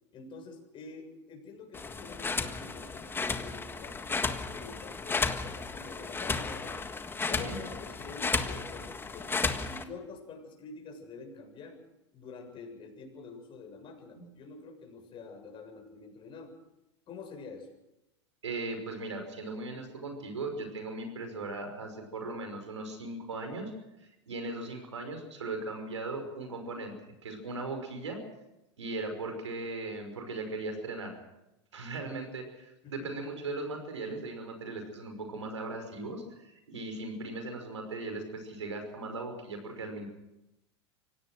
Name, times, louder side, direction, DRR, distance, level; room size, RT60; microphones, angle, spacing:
voice 1, 0.1-6.8 7.3-11.8 12.1-16.5 17.1-17.7 32.8-33.3, left 4 dB, 35° left, 2 dB, 7.2 m, -47 dB
sound 1, 1.7-9.8, left 4 dB, 15° left, 1.6 m, -34 dB
voice 2, 7.2-7.6 14.2-14.3 18.4-23.7 24.0-26.9 27.2-28.2 28.8-31.2 31.7-40.1, right 2 dB, 90° right, 5 dB, 5.6 m, -38 dB
25.0 x 17.5 x 6.4 m, 0.93 s
hypercardioid pair, 100°, 15 cm